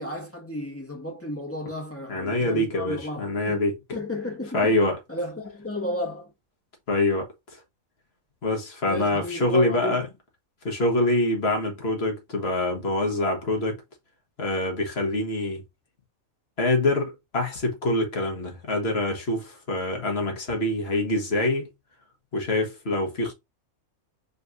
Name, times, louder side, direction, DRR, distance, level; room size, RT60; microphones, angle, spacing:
voice 1, 0.0-3.6 3.9-4.8 5.1-6.3 8.8-10.0, left 1 dB, 10° left, 1.4 m, -33 dB
voice 2, 2.1-3.7 4.5-5.0 6.9-7.6 8.4-10.1 10.6-13.8 14.4-15.6 16.6-21.7 22.3-23.3, left 2 dB, 45° left, 1.7 m, -25 dB
5.3 x 3.4 x 2.5 m
omnidirectional pair, 1.5 m